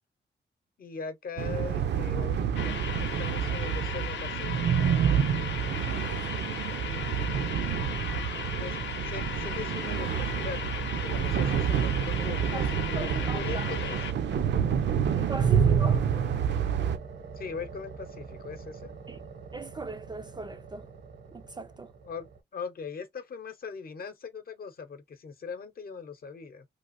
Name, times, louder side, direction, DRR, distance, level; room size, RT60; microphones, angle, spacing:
voice 1, 0.8-5.0 6.8-7.6 8.6-14.0 17.4-18.9 22.0-26.7, left 5 dB, 55° left, 0.8 m, -41 dB
sound 1, 1.4-17.0, right 8 dB, 75° right, 0.6 m, -28 dB
sound 2, 2.6-14.1, left 9 dB, 90° left, 0.6 m, -37 dB
voice 2, 5.7-6.1 12.2-13.9 15.1-16.1 19.1-19.2 19.5-20.9 21.3-21.9, right 3 dB, 25° right, 0.3 m, -40 dB
sound 3, 13.0-22.4, right 5 dB, 90° right, 1.1 m, -45 dB
3.3 x 2.5 x 2.5 m
wide cardioid pair, 125°, 19 cm